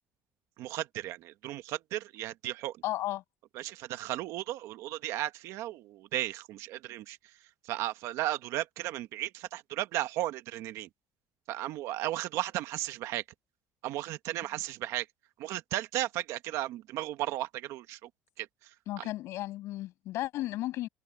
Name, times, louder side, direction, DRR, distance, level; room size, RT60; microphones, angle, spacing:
voice 1, 0.6-2.8 3.5-7.2 7.6-10.9 11.5-13.2 13.8-15.1 15.4-18.1 18.4-18.5 19.0-19.1, right 15 dB, 60° right, 1.4 m, -35 dB
voice 2, 2.8-3.2 18.9-20.9, left 16 dB, 55° left, 7.5 m, -34 dB
cardioid pair, 180°, 6 cm